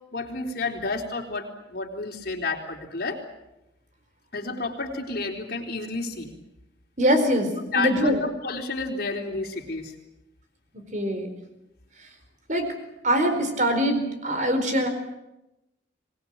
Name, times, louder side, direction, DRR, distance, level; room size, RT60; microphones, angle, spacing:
voice 1, 0.1-3.2 4.3-6.3 7.6-9.9, left 3 dB, 55° left, 1 dB, 4.0 m, -30 dB
voice 2, 7.0-8.2 10.9-11.3 12.5-12.7 13.0-14.9, equal, 40° right, 7 dB, 4.5 m, -23 dB
25.0 x 19.5 x 8.9 m, 0.93 s
head